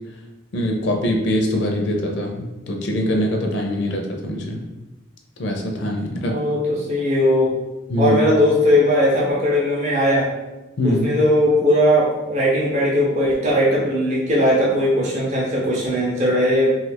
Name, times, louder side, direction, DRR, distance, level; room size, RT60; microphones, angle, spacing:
voice 1, 0.5-4.6 5.4-6.4 7.9-8.2 10.8-11.1, equal, 55° left, 2 dB, 0.5 m, -23 dB
voice 2, 6.3-7.5 8.0-10.3 10.8-16.8, equal, 35° right, -5 dB, 0.5 m, -18 dB
2.7 x 2.4 x 3.3 m, 1.1 s
head